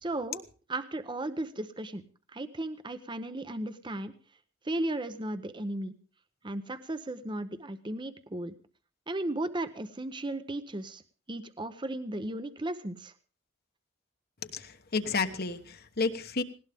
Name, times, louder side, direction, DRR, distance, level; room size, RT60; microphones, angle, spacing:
voice 1, 0.0-2.0 2.3-4.1 4.6-5.9 6.4-8.5 9.1-11.0 11.3-13.1, right 1 dB, 25° right, 11 dB, 0.8 m, -35 dB
voice 2, 14.4-16.4, left 4 dB, 55° left, 9 dB, 1.2 m, -31 dB
19.0 x 18.0 x 3.5 m, 0.37 s
head